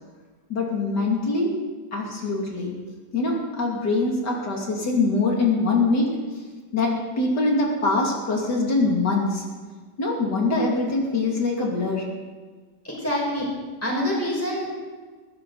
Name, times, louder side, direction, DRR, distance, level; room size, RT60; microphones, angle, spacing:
voice 1, 0.5-1.6 1.9-2.7 3.1-6.4 6.7-9.4 10.0-12.0, left 3 dB, 75° left, -2 dB, 3.3 m, -23 dB
voice 2, 12.8-13.5 13.8-14.7, left 1 dB, 10° left, -3 dB, 5.6 m, -26 dB
20.0 x 16.5 x 4.1 m, 1.4 s
omnidirectional pair, 1.8 m